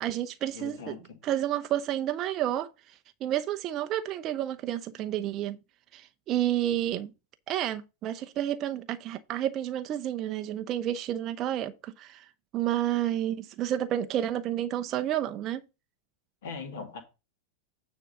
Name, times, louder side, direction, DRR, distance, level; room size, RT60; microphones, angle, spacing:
voice 1, 0.0-1.0 1.2-5.6 5.9-7.1 7.5-12.3 12.5-15.6, right 12 dB, 35° right, 0.6 m, -30 dB
voice 2, 0.5-1.2 16.4-17.0, left 5 dB, 55° left, 2.3 m, -40 dB
9.2 x 3.5 x 6.7 m
figure-of-eight pair, 90°, 0 cm